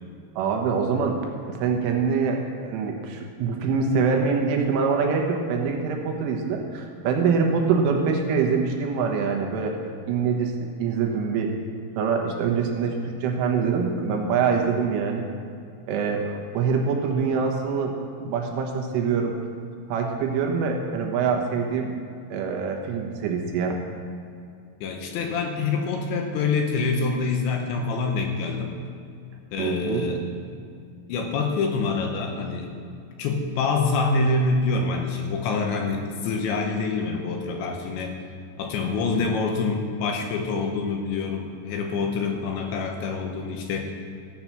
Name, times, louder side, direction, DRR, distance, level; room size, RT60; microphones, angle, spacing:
voice 1, 0.4-1.2 1.5-9.7 10.1-11.5 12.0-15.3 15.9-19.3 19.9-21.9 22.3-23.8 29.6-30.1, right 5 dB, 80° right, 1 dB, 3.7 m, -24 dB
voice 2, 24.8-28.7 29.5-30.3 31.1-32.7 33.2-38.2 38.6-43.9, left 4 dB, 75° left, 2 dB, 3.0 m, -26 dB
14.0 x 8.7 x 5.9 m, 2.4 s
omnidirectional pair, 5.7 m